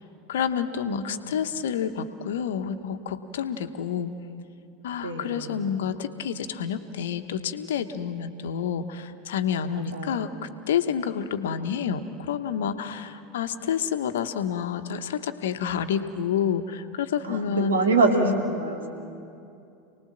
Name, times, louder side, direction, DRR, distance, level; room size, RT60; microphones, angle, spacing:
voice 1, 0.3-4.1 4.8-17.8 18.1-18.4, left 8 dB, 65° left, 9 dB, 1.1 m, -29 dB
voice 2, 0.9-1.4 5.0-5.7 9.7-10.4 17.2-18.9, right 3 dB, 70° right, 3 dB, 2.7 m, -26 dB
28.0 x 19.5 x 7.5 m, 2.6 s
figure-of-eight pair, 80°, 0 cm